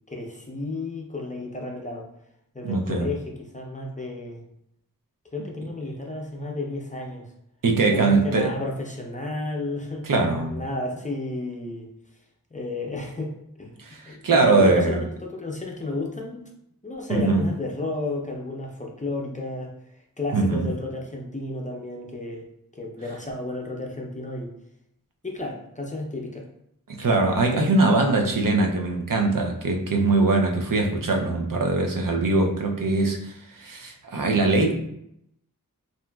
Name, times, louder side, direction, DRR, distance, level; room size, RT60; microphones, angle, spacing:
voice 1, 0.1-2.1 2.5-4.4 5.3-7.3 7.9-11.9 12.5-13.8 14.0-16.5 16.8-19.7 20.2-22.5 22.8-24.5 25.2-26.5, left 2 dB, 20° left, -1 dB, 0.5 m, -32 dB
voice 2, 2.6-3.1 7.6-8.5 10.1-10.6 13.8-15.0 17.2-17.5 20.3-20.6 26.9-34.7, right 3 dB, 65° right, 2 dB, 0.5 m, -22 dB
2.8 x 2.5 x 2.2 m, 0.76 s
wide cardioid pair, 45°, 36 cm